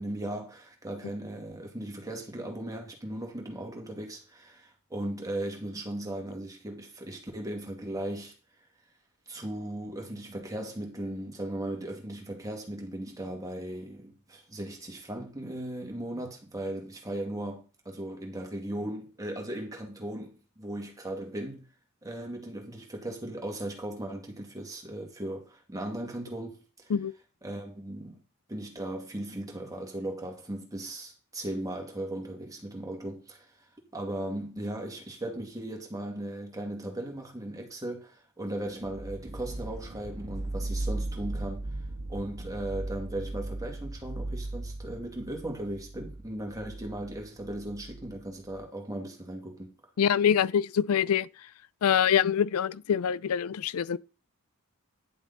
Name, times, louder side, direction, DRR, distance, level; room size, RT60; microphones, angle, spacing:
voice 1, 0.0-8.3 9.3-21.7 22.0-26.9 27.4-28.2 28.5-33.7 33.9-41.8 42.1-49.7, right 1 dB, 15° right, 2.4 m, -37 dB
sound 1, 38.8-48.6, right 2 dB, 65° right, 1.5 m, -37 dB
voice 2, 50.0-51.3 51.8-54.0, left 8 dB, 75° left, 0.4 m, -25 dB
10.5 x 7.0 x 4.1 m
head